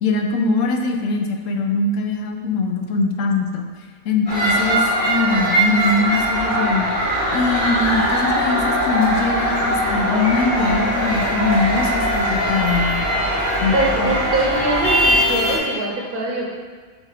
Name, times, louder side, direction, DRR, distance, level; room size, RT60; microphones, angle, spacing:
voice 1, 0.0-3.7 4.0-6.9 7.3-13.1 13.6-14.2, left 3 dB, 70° left, 3 dB, 1.0 m, -22 dB
sound 1, 4.3-15.6, equal, 90° left, 2.3 m, -20 dB
voice 2, 13.7-16.4, right 1 dB, 45° right, -3 dB, 0.9 m, -23 dB
7.4 x 2.6 x 4.9 m, 1.5 s
omnidirectional pair, 1.5 m